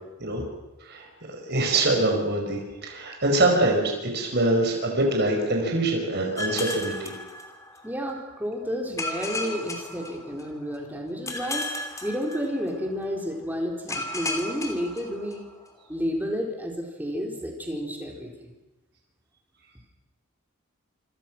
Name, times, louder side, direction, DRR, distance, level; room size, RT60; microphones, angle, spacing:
voice 1, 0.8-7.1, right 2 dB, 50° right, 1 dB, 5.0 m, -24 dB
sound 1, 6.4-8.0 9.0-10.7 11.3-12.9 13.9-15.6, left 2 dB, 15° left, 2.9 m, -34 dB
voice 2, 7.8-11.7 12.0-15.4 15.9-18.5, equal, 10° right, 0 dB, 4.4 m, -31 dB
27.5 x 24.0 x 6.2 m, 1.0 s
head